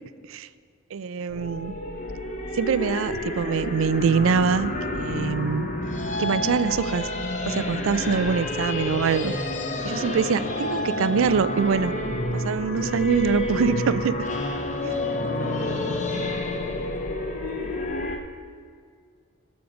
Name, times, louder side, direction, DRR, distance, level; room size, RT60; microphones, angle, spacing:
voice 1, 0.9-1.7 2.5-5.7 6.2-7.1 7.5-9.3 9.8-11.9 12.3-14.1 14.8-15.1, right 6 dB, 70° right, 16 dB, 0.4 m, -24 dB
sound 1, 1.3-18.2, left 1 dB, 35° left, 1.0 m, -29 dB
voice 2, 15.2-17.1 17.5-17.8, equal, 10° left, 1 dB, 1.1 m, -41 dB
14.0 x 6.5 x 5.0 m, 2.1 s
head